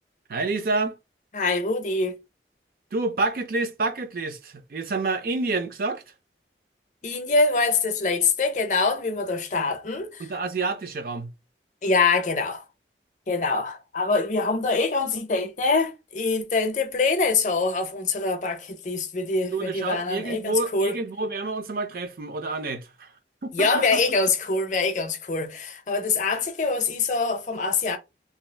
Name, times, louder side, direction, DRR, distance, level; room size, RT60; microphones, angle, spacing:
voice 1, 0.3-1.0 2.9-6.0 9.6-9.7 10.2-11.3 19.5-23.1 23.4-24.2, right 3 dB, 55° right, 0.5 m, -28 dB
voice 2, 1.3-2.2 7.0-10.2 11.8-12.6 13.3-20.9 23.5-28.0, left 3 dB, 45° left, 0.5 m, -24 dB
2.7 x 2.3 x 3.2 m
head